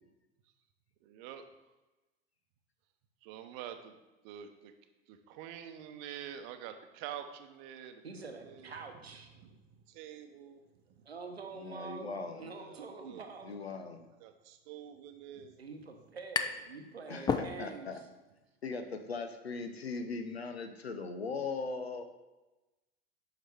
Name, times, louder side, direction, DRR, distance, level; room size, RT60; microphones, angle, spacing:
voice 1, 1.0-1.4 3.2-4.0 4.2-4.7 5.1-8.8 9.3-9.6 9.9-10.6 10.9-11.0 12.5-13.3 14.0-15.6, right 10 dB, 50° right, 8 dB, 0.8 m, -47 dB
voice 2, 8.0-9.3 11.0-12.1 12.4-13.5 15.6-18.1, right 4 dB, 85° right, 4 dB, 1.0 m, -46 dB
voice 3, 11.6-12.5 13.4-14.1 17.1-18.0 18.6-22.1, left 4 dB, 85° left, 8 dB, 0.7 m, -39 dB
sound 1, 15.2-15.3 15.5-16.7 17.1-18.0, left 5 dB, 15° left, 0.4 m, -34 dB
8.1 x 5.8 x 3.5 m, 1.1 s
figure-of-eight pair, 80°, 30 cm